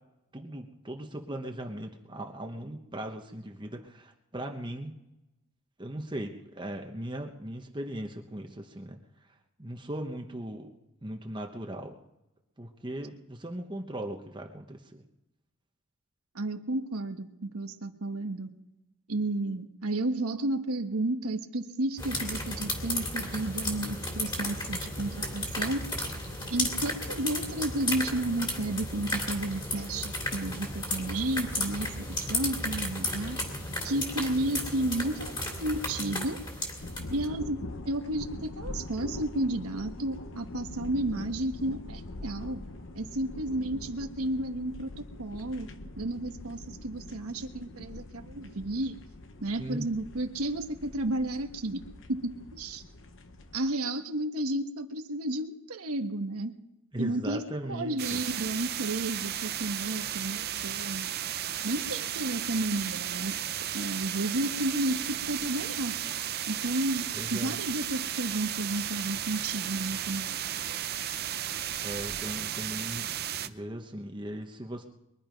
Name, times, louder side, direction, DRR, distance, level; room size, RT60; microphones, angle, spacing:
voice 1, 0.3-5.0 5.8-9.0 9.6-10.7 11.0-11.9 12.6-15.0 49.6-49.9 56.9-58.2 67.1-67.6 71.8-74.8, right 1 dB, 20° right, 2 dB, 1.0 m, -38 dB
voice 2, 16.3-18.5 19.1-25.8 26.5-33.4 33.8-36.4 37.1-42.6 42.9-45.7 46.0-49.0 49.4-51.8 52.1-52.8 53.5-56.5 57.0-57.4 57.7-61.1 61.6-63.4 63.7-65.9 66.5-70.4, right 1 dB, 80° right, 6 dB, 1.2 m, -32 dB
sound 1, 22.0-37.2, left 1 dB, 20° left, 2.6 m, -34 dB
sound 2, 36.8-53.6, left 2 dB, 55° left, 1.0 m, -43 dB
sound 3, 58.0-73.5, right 11 dB, 45° right, 0.6 m, -34 dB
23.0 x 11.0 x 5.2 m, 0.92 s
head